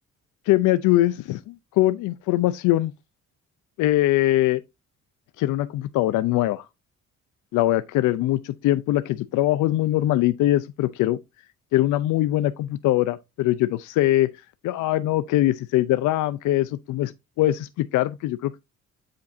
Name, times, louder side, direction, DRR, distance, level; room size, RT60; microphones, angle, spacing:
voice 1, 0.5-2.9 3.8-4.6 5.4-6.6 7.5-11.2 11.7-14.3 14.6-17.1 17.4-18.6, left 15 dB, 85° left, 0.5 m, -22 dB
8.2 x 5.1 x 2.5 m
cardioid pair, 90°, 30 cm